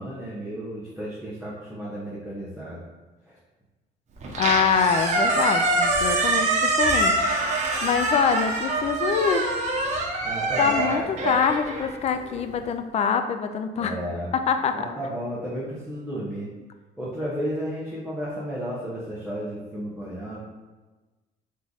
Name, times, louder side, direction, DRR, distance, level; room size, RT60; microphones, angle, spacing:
voice 1, 0.0-2.8 3.3-3.4 10.2-11.4 13.8-14.3 14.7-16.5 17.0-20.4, equal, ahead, -9 dB, 1.0 m, -33 dB
Squeak, 4.2-12.5, right 2 dB, 45° right, 0.9 m, -24 dB
voice 2, 4.4-7.2 7.8-9.5 10.6-14.0 14.5-14.9, left 7 dB, 40° left, 8 dB, 0.4 m, -24 dB
3.6 x 3.3 x 3.9 m, 1.2 s
cardioid pair, 110°, 17 cm